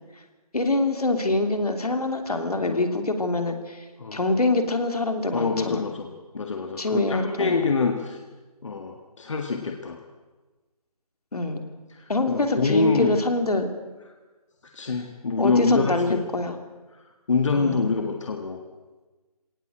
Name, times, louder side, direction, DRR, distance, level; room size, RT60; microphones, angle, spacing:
voice 1, 0.5-3.9 4.1-5.8 6.8-7.7 11.3-11.6 12.1-13.7 15.4-16.6 17.5-17.9, left 2 dB, 75° left, 6 dB, 3.0 m, -25 dB
voice 2, 2.3-2.8 4.0-4.2 5.3-6.1 6.3-8.2 8.6-10.0 11.9-13.1 14.6-16.2 16.9-18.6, left 4 dB, 50° left, 4 dB, 1.7 m, -26 dB
21.0 x 18.0 x 7.8 m, 1.3 s
figure-of-eight pair, 160°, 20 cm